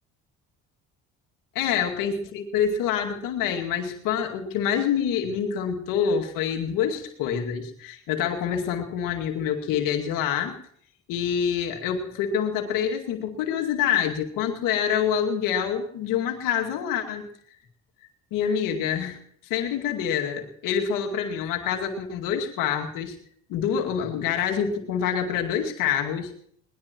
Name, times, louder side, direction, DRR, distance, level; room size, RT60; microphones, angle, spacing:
voice 1, 1.6-10.6 11.1-17.3 18.3-19.2 19.5-23.2 23.5-26.3, left 8 dB, 70° left, 2 dB, 2.3 m, -26 dB
21.5 x 19.0 x 3.0 m, 0.65 s
hypercardioid pair, 60°, 34 cm